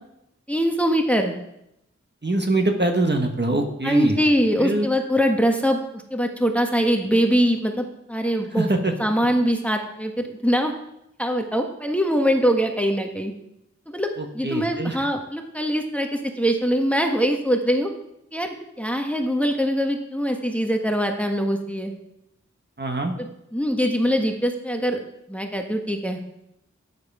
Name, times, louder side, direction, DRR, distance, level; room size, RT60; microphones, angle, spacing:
voice 1, 0.5-1.3 3.8-8.7 9.0-10.7 11.2-13.3 13.9-17.9 18.3-21.9 23.2-25.0 25.3-26.2, equal, 5° left, 4 dB, 1.4 m, -23 dB
voice 2, 2.2-4.2 4.6-4.9 8.5-8.9 14.2-15.1 22.8-23.1, right 2 dB, 35° right, 4 dB, 1.6 m, -23 dB
12.5 x 9.6 x 4.9 m, 0.82 s
wide cardioid pair, 55°, 29 cm